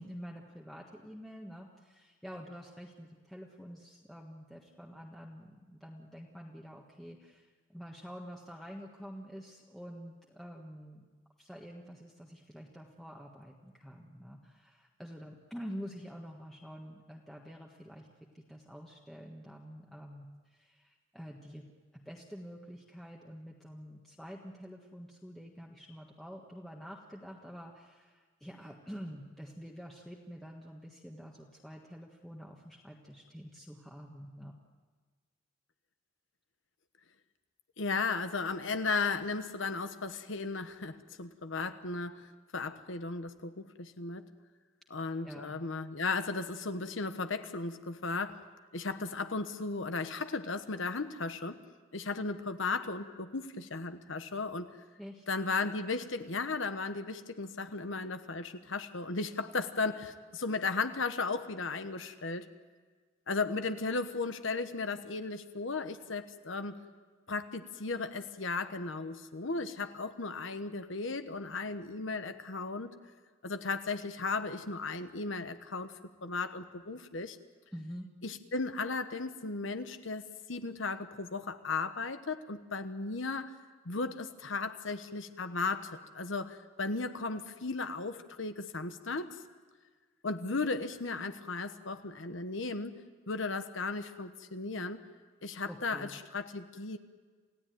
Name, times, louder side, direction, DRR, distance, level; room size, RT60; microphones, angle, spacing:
voice 1, 0.0-11.0 11.4-18.1 18.3-21.7 21.9-34.6 45.0-45.6 55.0-55.2 77.7-78.1 95.6-96.2, equal, ahead, -2 dB, 1.5 m, -47 dB
voice 2, 37.8-44.2 44.9-48.4 48.7-51.6 51.9-54.7 55.3-62.5 63.3-66.8 67.3-72.9 73.4-77.4 78.2-83.6 83.8-89.4 90.2-93.0 93.3-95.1 95.4-97.0, left 3 dB, 70° left, 9 dB, 1.2 m, -35 dB
28.5 x 16.5 x 9.4 m, 1.5 s
head